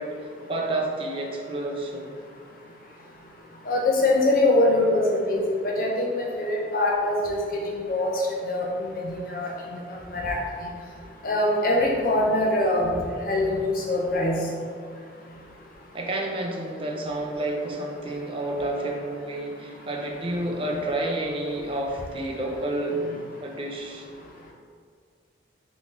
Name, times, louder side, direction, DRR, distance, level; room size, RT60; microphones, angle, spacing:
voice 1, 0.0-2.1 15.9-23.0 23.4-24.1, right 1 dB, 30° right, 0 dB, 0.5 m, -30 dB
voice 2, 3.7-7.4 7.9-8.1 8.5-9.5 10.1-10.4 11.2-12.9 13.3-14.4, left 2 dB, 50° left, -2 dB, 0.7 m, -23 dB
3.7 x 3.0 x 4.0 m, 2.1 s
head